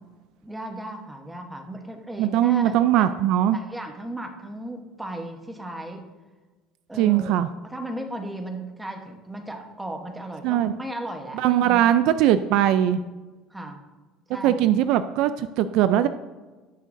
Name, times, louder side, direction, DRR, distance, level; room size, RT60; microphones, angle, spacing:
voice 1, 0.4-3.1 3.5-6.0 6.9-11.8 13.5-13.8 14.3-14.7, right 1 dB, 5° right, 3 dB, 1.0 m, -36 dB
voice 2, 2.2-3.6 7.0-7.5 10.4-10.7 11.3-13.0 14.4-16.1, right 11 dB, 60° right, 12 dB, 0.4 m, -20 dB
17.0 x 6.4 x 2.6 m, 1.3 s
cardioid pair, 165°, 0 cm